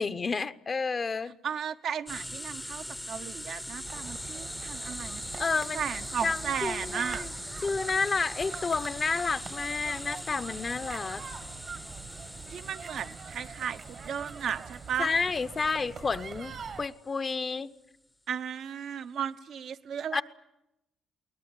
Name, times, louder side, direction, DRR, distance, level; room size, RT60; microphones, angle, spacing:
voice 1, 0.0-1.3 5.4-5.9 6.2-7.3 7.6-11.2 15.0-17.7 20.1-20.2, left 4 dB, 35° left, 0.9 m, -30 dB
voice 2, 1.4-5.4 5.7-7.2 12.5-15.1 18.3-20.2, right 8 dB, 65° right, 1.0 m, -35 dB
sound 1, 2.1-16.6, left 1 dB, 5° left, 0.8 m, -41 dB
sound 2, 3.8-16.9, right 5 dB, 50° right, 1.4 m, -44 dB
21.5 x 19.0 x 9.9 m
cardioid pair, 90°, 0 cm